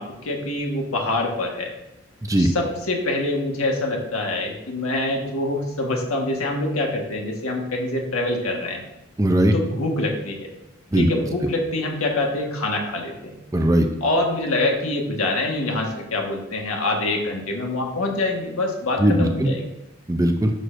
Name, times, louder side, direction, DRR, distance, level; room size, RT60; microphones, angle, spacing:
voice 1, 0.0-1.7 2.3-8.8 9.5-10.5 11.0-13.3 14.0-19.6, left 2 dB, 80° left, 0 dB, 1.6 m, -25 dB
voice 2, 2.2-2.5 9.2-9.5 10.9-11.1 13.5-13.9 19.0-19.5 20.1-20.5, right 1 dB, 15° right, 5 dB, 0.5 m, -18 dB
11.0 x 6.5 x 2.6 m, 0.89 s
head